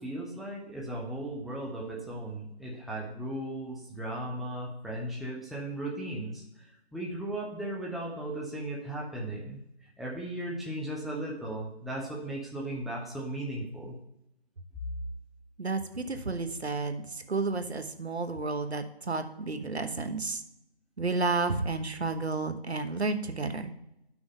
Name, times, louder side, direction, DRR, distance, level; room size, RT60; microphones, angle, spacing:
voice 1, 0.0-9.6 10.0-14.0, right 1 dB, ahead, -4 dB, 0.5 m, -36 dB
voice 2, 15.6-20.4 21.0-23.7, right 3 dB, 75° right, 8 dB, 1.0 m, -31 dB
10.5 x 6.1 x 3.7 m, 0.84 s
figure-of-eight pair, 175°, 32 cm